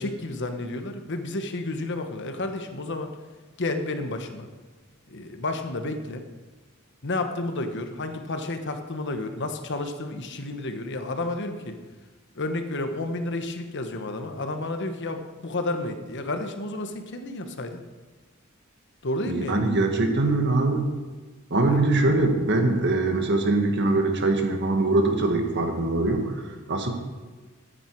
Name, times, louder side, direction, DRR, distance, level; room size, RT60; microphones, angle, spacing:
voice 1, 0.0-3.1 3.6-4.5 5.1-6.2 7.0-11.8 12.3-17.8 19.0-19.7 21.7-21.8, left 2 dB, 60° left, 7 dB, 1.1 m, -31 dB
voice 2, 19.3-20.9 21.5-26.9, right 2 dB, 55° right, 4 dB, 1.6 m, -23 dB
13.5 x 9.0 x 4.6 m, 1.3 s
head